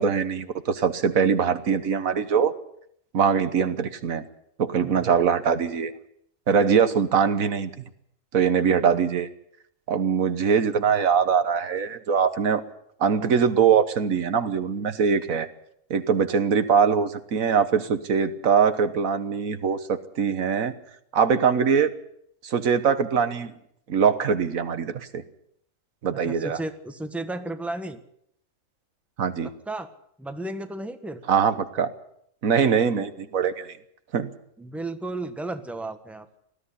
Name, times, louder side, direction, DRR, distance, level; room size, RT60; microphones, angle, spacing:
voice 1, 0.0-2.5 3.1-4.2 4.6-5.9 6.5-7.7 8.3-9.3 9.9-12.6 13.0-15.5 15.9-20.7 21.1-21.9 22.4-23.5 23.9-25.2 26.0-26.6 29.2-29.5 31.3-31.9 32.4-33.7 34.1-34.3, right 6 dB, 85° right, 11 dB, 1.7 m, -22 dB
voice 2, 26.2-28.0 29.7-29.9 30.2-31.2 34.6-36.4, right 2 dB, ahead, 8 dB, 1.3 m, -33 dB
19.5 x 13.5 x 10.0 m, 0.72 s
omnidirectional pair, 1.4 m